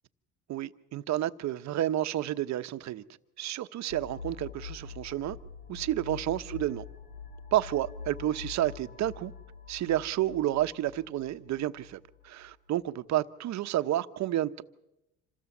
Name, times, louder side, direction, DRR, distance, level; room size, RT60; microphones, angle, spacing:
voice 1, 0.5-3.0 3.4-5.4 5.7-6.8 7.5-9.3 9.7-14.6, right 13 dB, 60° right, 1.0 m, -30 dB
sound 1, 3.9-12.5, left 6 dB, 90° left, 4.5 m, -45 dB
27.0 x 16.5 x 7.3 m
cardioid pair, 105°, 32 cm